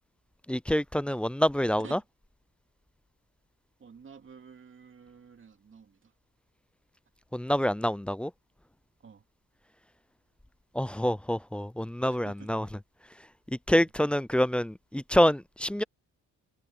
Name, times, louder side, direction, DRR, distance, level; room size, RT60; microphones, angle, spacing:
voice 1, 0.5-2.0 7.3-8.3 10.7-12.7 13.5-15.8, equal, 5° left, 0.4 m, -26 dB
voice 2, 3.8-6.1 9.0-9.2 12.1-12.5, right 6 dB, 40° right, 2.7 m, -50 dB
cardioid pair, 90°, 30 cm